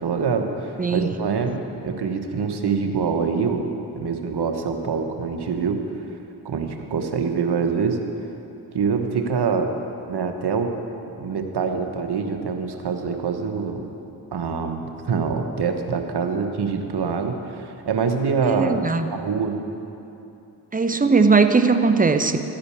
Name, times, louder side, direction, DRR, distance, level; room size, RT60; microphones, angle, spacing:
voice 1, 0.0-3.6 3.9-5.8 6.4-8.0 8.7-9.7 10.1-10.7 11.2-13.9 14.3-18.8 19.1-19.6, right 5 dB, 60° right, 5 dB, 1.2 m, -25 dB
voice 2, 18.4-19.1 20.7-22.4, right 4 dB, 20° right, 8 dB, 0.7 m, -19 dB
12.5 x 5.0 x 8.5 m, 2.9 s
supercardioid pair, 50°, 46 cm